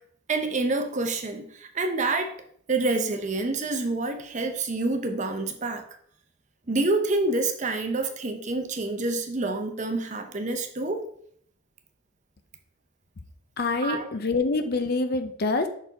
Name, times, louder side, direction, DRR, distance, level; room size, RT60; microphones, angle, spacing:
voice 1, 0.3-2.4 2.7-5.8 6.7-11.1 13.8-14.2, right 2 dB, 35° right, 0.7 m, -27 dB
voice 2, 13.6-15.7, left 3 dB, 45° left, 0.6 m, -26 dB
5.9 x 4.5 x 4.0 m
head